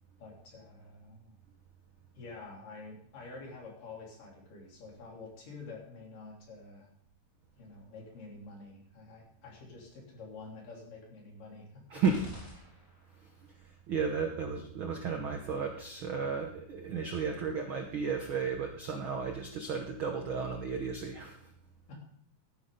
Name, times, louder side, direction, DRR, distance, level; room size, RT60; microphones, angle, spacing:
voice 1, 0.2-1.3 2.2-6.9 7.6-12.0 21.9-22.0, left 3 dB, 70° left, -2 dB, 4.8 m, -48 dB
sound 1, 12.0-13.3, equal, 30° left, 3.6 m, -48 dB
voice 2, 13.9-21.4, right 5 dB, 75° right, 3 dB, 1.1 m, -33 dB
12.5 x 11.0 x 3.8 m, 0.66 s
omnidirectional pair, 3.9 m